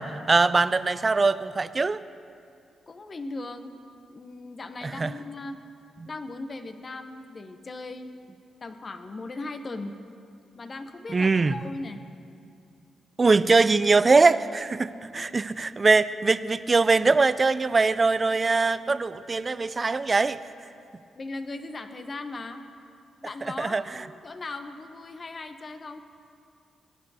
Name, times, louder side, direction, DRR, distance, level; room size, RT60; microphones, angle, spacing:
voice 1, 0.0-2.0 5.0-5.1 6.0-6.1 11.1-11.5 13.2-20.4 23.6-23.8, right 3 dB, 40° right, 15 dB, 0.4 m, -22 dB
voice 2, 2.9-3.8 4.1-5.6 6.0-8.1 8.6-9.9 10.5-12.0 21.2-22.7 23.2-26.0, left 2 dB, 45° left, 9 dB, 0.8 m, -38 dB
20.0 x 9.9 x 2.8 m, 2.5 s
supercardioid pair, 45°, 0 cm